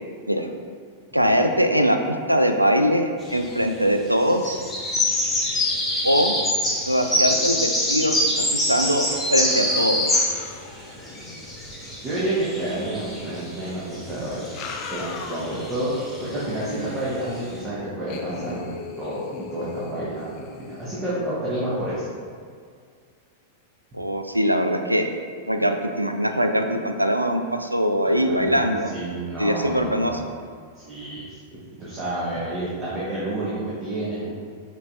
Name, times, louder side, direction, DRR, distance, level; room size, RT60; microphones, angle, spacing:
voice 1, 1.1-4.6 6.0-6.3 6.9-10.2 23.9-25.1 25.5-28.9 29.4-30.2, equal, 90° right, 5 dB, 0.3 m, -22 dB
sound 1, 3.2-3.7 4.3-10.5 10.9-17.6, left 1 dB, 10° left, 1.0 m, -25 dB
sound 2, 8.2-8.6 8.9-11.8 13.1-13.2 14.3-15.8 16.2-16.3 18.1-20.9, left 4 dB, 35° left, 0.4 m, -39 dB
voice 2, 12.0-14.5 14.9-15.9 16.2-22.1 28.0-28.6 28.9-30.2 30.7-31.4 31.8-34.3, right 1 dB, 25° right, -9 dB, 1.1 m, -29 dB
5.3 x 4.0 x 2.4 m, 2.1 s
figure-of-eight pair, 95°, 0 cm